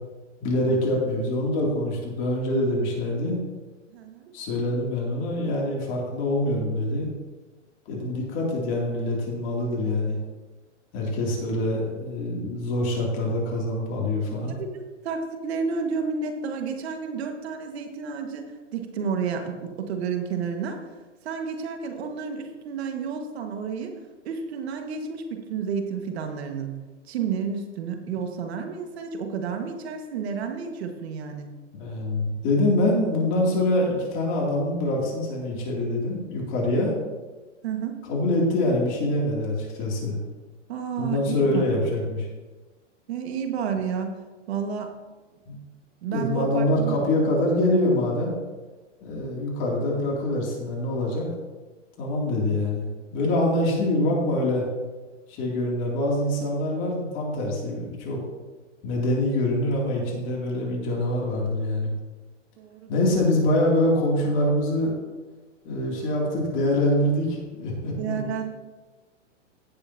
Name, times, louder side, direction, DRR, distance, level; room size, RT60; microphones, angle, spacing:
voice 1, 0.4-3.4 4.3-7.1 7.9-10.2 10.9-14.6 31.8-36.9 38.1-40.2 41.0-42.3 45.5-45.6 46.1-48.3 49.0-51.3 52.0-52.9 53.1-54.6 55.3-58.2 58.8-61.9 62.9-64.9 65.6-68.3, left 1 dB, 30° left, -2 dB, 2.7 m, -25 dB
voice 2, 3.9-4.3 14.5-20.8 21.2-23.9 24.3-31.5 37.6-38.0 40.7-41.8 43.1-44.2 44.5-44.9 46.0-47.0 62.6-62.9 68.0-68.4, right 6 dB, 55° right, 4 dB, 1.7 m, -31 dB
16.0 x 6.9 x 2.8 m, 1.2 s
hypercardioid pair, 140°, 37 cm